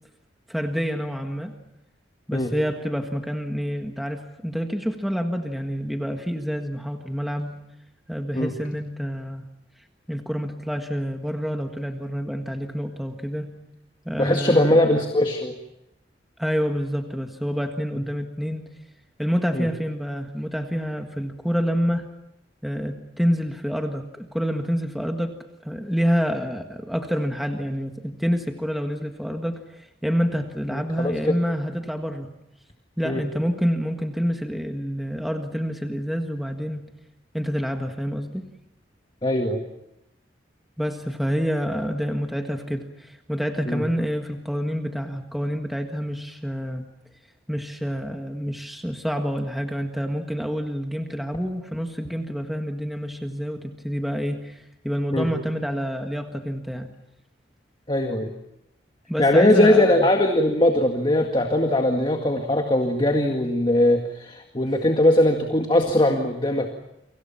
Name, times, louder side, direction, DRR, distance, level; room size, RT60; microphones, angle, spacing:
voice 1, 0.5-1.5 2.3-7.6 8.1-9.4 10.1-13.6 14.0-15.0 16.4-18.7 19.2-22.1 22.6-32.3 33.0-36.9 37.3-38.4 40.8-46.8 47.5-56.9 59.1-60.1, equal, ahead, 4 dB, 1.6 m, -27 dB
voice 2, 14.2-15.5 19.5-19.7 30.7-31.4 33.0-33.2 39.2-39.6 43.7-43.8 55.1-55.3 57.9-58.3 59.2-66.7, left 1 dB, 25° left, 4 dB, 2.0 m, -20 dB
30.0 x 25.0 x 5.8 m, 0.86 s
head